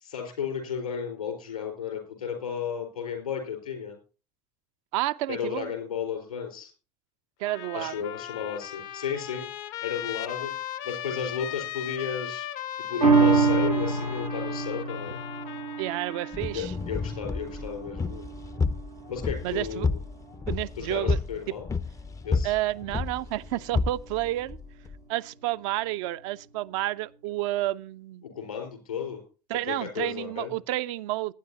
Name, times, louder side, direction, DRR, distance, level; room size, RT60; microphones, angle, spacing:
voice 1, 0.1-3.9 5.3-6.7 7.7-9.5 9.8-10.5 10.8-12.5 12.8-15.2 16.5-18.3 19.1-20.0 20.8-21.7 22.2-22.5 28.3-29.2 29.7-30.6, left 7 dB, 80° left, 4.4 m, -33 dB
voice 2, 4.9-5.7 7.4-8.0 15.8-16.7 19.4-19.9 20.5-21.2 22.4-24.6 25.1-28.2 29.5-31.3, right 16 dB, 60° right, 0.5 m, -30 dB
Trumpet, 7.4-16.6, left 12 dB, 55° left, 0.8 m, -38 dB
sound 1, 13.0-19.7 20.1-20.2, right 4 dB, 90° right, 1.0 m, -27 dB
sound 2, 16.3-25.0, left 4 dB, 15° left, 0.5 m, -31 dB
19.5 x 9.5 x 2.8 m
figure-of-eight pair, 60°, 19 cm